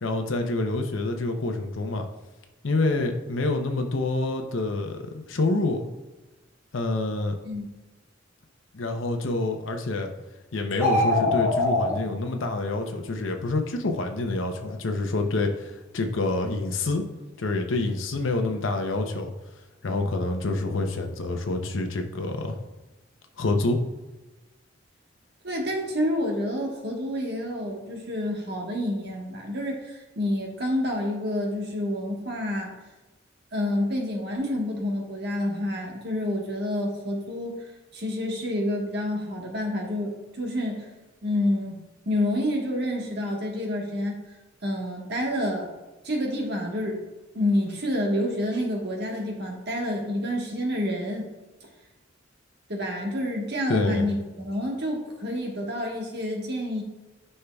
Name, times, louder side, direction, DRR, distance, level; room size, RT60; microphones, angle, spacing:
voice 1, 0.0-2.1 2.6-5.9 6.7-7.3 8.7-10.1 10.5-17.1 17.4-19.3 19.8-22.6 23.4-23.8 53.7-54.1, left 2 dB, 75° left, 4 dB, 0.7 m, -27 dB
sound 1, 10.7-11.9, left 2 dB, 10° right, 2.3 m, -22 dB
voice 2, 25.4-32.7 33.5-40.9 41.2-41.8 42.0-44.2 44.6-45.7 46.0-47.0 47.3-51.3 51.6-51.7 52.7-56.8, left 1 dB, 60° right, 1 dB, 1.4 m, -28 dB
9.8 x 5.5 x 2.3 m, 1.1 s
head